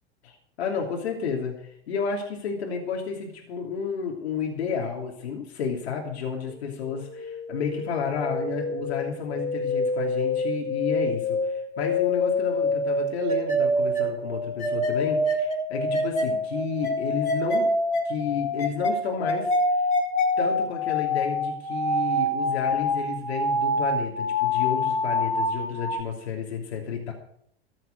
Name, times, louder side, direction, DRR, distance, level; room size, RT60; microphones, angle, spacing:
voice 1, 0.2-17.7 18.0-19.5 19.8-19.9 20.4-27.1, left 6 dB, 80° left, 1 dB, 3.0 m, -31 dB
sound 1, 6.9-26.0, left 1 dB, 20° left, 5.2 m, -26 dB
14.5 x 7.7 x 7.9 m, 0.68 s
hypercardioid pair, 100°, 32 cm